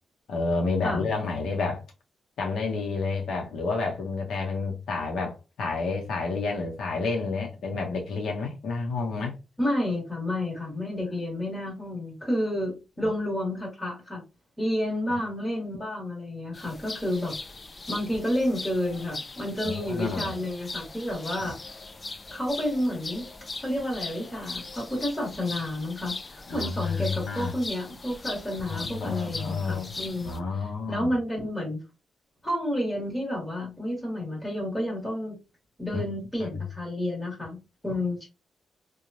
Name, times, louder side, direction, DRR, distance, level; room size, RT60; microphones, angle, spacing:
voice 1, 0.3-1.8 2.4-9.4 13.0-13.1 15.1-15.2 19.6-20.3 21.4-21.5 26.5-27.5 28.6-29.9 30.2-31.1 35.9-36.0 36.4-36.5, left 4 dB, 80° left, 0.7 m, -30 dB
voice 2, 9.6-14.2 14.6-17.3 17.9-21.6 22.3-23.3 23.6-31.8 32.4-35.3 35.8-37.6 37.8-38.3, left 1 dB, 5° left, 1.2 m, -30 dB
sound 1, 16.5-30.4, left 3 dB, 25° left, 0.4 m, -40 dB
3.1 x 2.2 x 2.5 m
cardioid pair, 125°, 0 cm